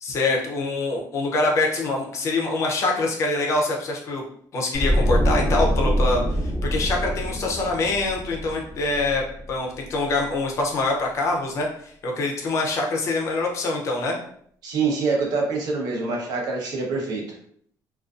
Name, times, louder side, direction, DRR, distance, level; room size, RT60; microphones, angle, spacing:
voice 1, 0.0-4.2 4.5-14.2, left 2 dB, 45° left, 0 dB, 0.5 m, -25 dB
sound 1, 4.7-9.8 10.1-10.3, equal, 5° left, 0.9 m, -24 dB
voice 2, 14.6-17.2, right 4 dB, 65° right, -1 dB, 0.7 m, -25 dB
2.4 x 2.3 x 2.4 m, 0.63 s
cardioid pair, 170°, 7 cm